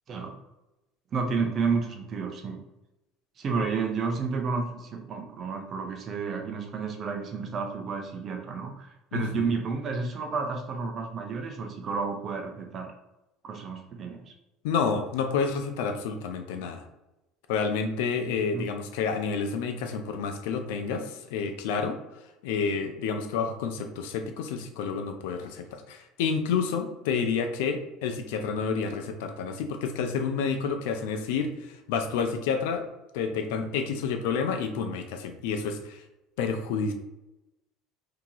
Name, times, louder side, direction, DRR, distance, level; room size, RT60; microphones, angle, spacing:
voice 1, 1.1-2.6 3.4-12.9 13.4-14.3 18.5-18.7, right 4 dB, 35° right, 4 dB, 0.6 m, -31 dB
voice 2, 9.1-9.5 14.6-16.8 17.5-22.0 22.4-32.8 33.1-36.0 36.4-36.9, left 5 dB, 90° left, 6 dB, 0.5 m, -29 dB
2.9 x 2.8 x 3.8 m, 0.96 s
cardioid pair, 140°, 0 cm